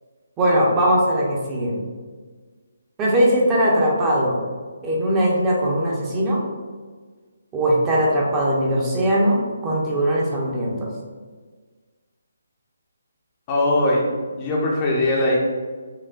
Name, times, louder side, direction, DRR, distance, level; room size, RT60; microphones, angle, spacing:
voice 1, 0.4-1.8 3.0-4.4 4.8-6.4 7.5-9.4 9.6-10.8, right 1 dB, 15° right, -4 dB, 0.7 m, -20 dB
voice 2, 13.5-14.0 14.4-15.4, left 1 dB, 25° left, -3 dB, 0.7 m, -20 dB
5.8 x 2.1 x 2.4 m, 1.4 s
figure-of-eight pair, 145°, 0 cm